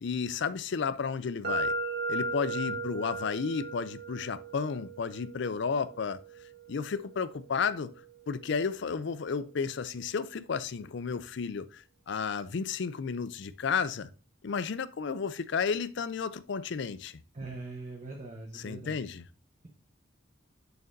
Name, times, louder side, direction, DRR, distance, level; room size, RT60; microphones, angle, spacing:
voice 1, 0.0-1.7 2.1-6.2 6.7-7.9 8.3-14.1 14.4-17.2 18.5-19.2, left 5 dB, 60° left, 0.4 m, -32 dB
sound 1, 1.4-9.3, right 2 dB, 55° right, 1.5 m, -38 dB
voice 2, 17.3-19.0, right 3 dB, 40° right, 1.0 m, -42 dB
6.7 x 6.5 x 2.6 m
head